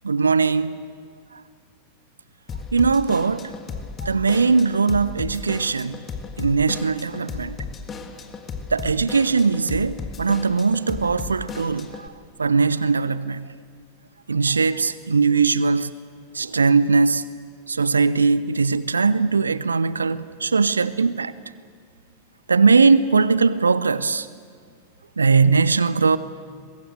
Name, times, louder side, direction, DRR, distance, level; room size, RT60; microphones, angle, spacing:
voice 1, 0.0-0.8 2.7-3.5 4.0-6.0 6.4-7.6 8.7-12.1 12.4-13.5 14.3-15.9 16.3-17.2 17.7-21.3 22.5-24.3 25.2-26.2, right 4 dB, 75° right, 0.7 m, -20 dB
Drum kit / Drum, 2.5-12.1, left 5 dB, 25° left, 2.0 m, -35 dB
23.5 x 22.0 x 8.0 m
figure-of-eight pair, 90°, 0 cm